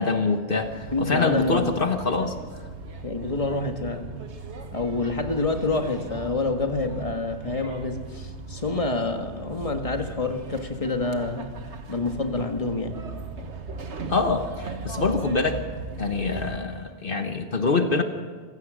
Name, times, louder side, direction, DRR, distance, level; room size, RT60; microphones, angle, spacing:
voice 1, 0.0-2.3 14.1-15.6 16.0-18.0, left 3 dB, 55° left, 6 dB, 1.4 m, -25 dB
sound 1, 0.6-16.6, right 3 dB, 85° right, 1.7 m, -38 dB
voice 2, 0.9-1.7 3.0-4.1 4.7-11.5 11.9-13.0, left 3 dB, 30° left, 5 dB, 1.7 m, -27 dB
25.5 x 16.5 x 6.3 m, 1.5 s
omnidirectional pair, 1.1 m